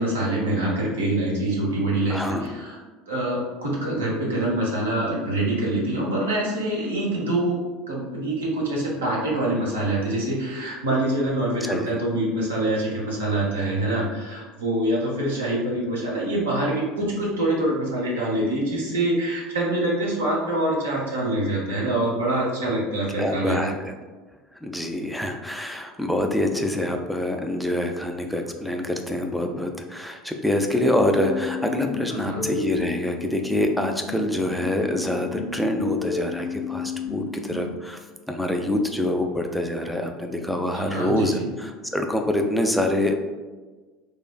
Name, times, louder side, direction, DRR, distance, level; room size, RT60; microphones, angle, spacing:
voice 1, 0.0-2.8 3.1-7.6 7.9-23.7 32.2-32.4 40.7-41.4, right 1 dB, 70° right, -4 dB, 0.7 m, -25 dB
voice 2, 2.1-2.5 11.6-11.9 23.2-23.9 24.6-38.0 38.3-43.1, left 1 dB, ahead, 3 dB, 0.3 m, -25 dB
sound 1, 31.1-34.1 34.5-37.5, left 4 dB, 75° left, 0.5 m, -32 dB
3.2 x 2.4 x 2.3 m, 1.3 s
figure-of-eight pair, 70°, 0 cm